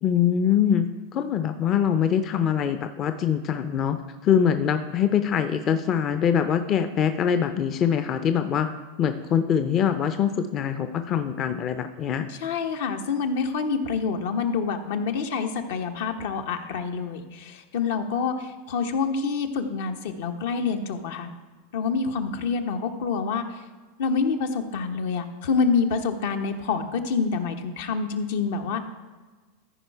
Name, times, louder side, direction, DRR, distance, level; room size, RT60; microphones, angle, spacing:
voice 1, 0.0-0.9 1.1-4.0 4.2-8.7 9.0-12.2, left 8 dB, 35° left, 9 dB, 0.5 m, -23 dB
voice 2, 12.3-21.3 21.7-23.6 24.0-28.9, left 5 dB, 75° left, 6 dB, 0.9 m, -27 dB
14.0 x 4.8 x 4.6 m, 1.3 s
supercardioid pair, 125°, 0 cm